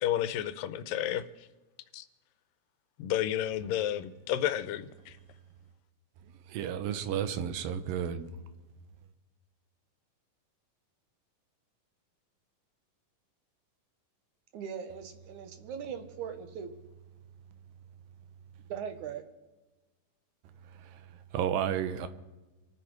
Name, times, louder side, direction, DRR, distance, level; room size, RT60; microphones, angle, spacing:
voice 1, 0.0-1.5 1.9-2.1 3.0-5.2, left 11 dB, 90° left, 2.4 m, -31 dB
voice 2, 6.5-8.3 21.3-22.1, right 9 dB, 85° right, 2.7 m, -31 dB
voice 3, 14.5-16.7 18.7-19.3, right 7 dB, 65° right, 2.4 m, -40 dB
25.5 x 9.3 x 4.6 m
omnidirectional pair, 4.0 m